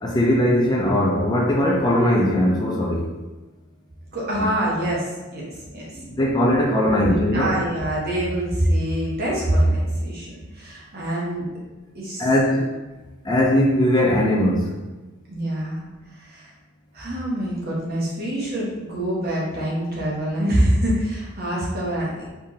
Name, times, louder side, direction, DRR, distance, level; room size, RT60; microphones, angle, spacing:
voice 1, 0.0-3.1 4.4-4.5 6.0-7.6 12.2-12.7 13.2-14.7, left 1 dB, 20° left, -2 dB, 0.5 m, -20 dB
voice 2, 4.1-5.4 5.7-6.0 6.8-11.5 11.9-12.3 15.3-15.8 16.1-16.5 16.9-22.3, right 1 dB, 45° right, -5 dB, 1.4 m, -25 dB
4.7 x 3.7 x 2.8 m, 1.2 s
head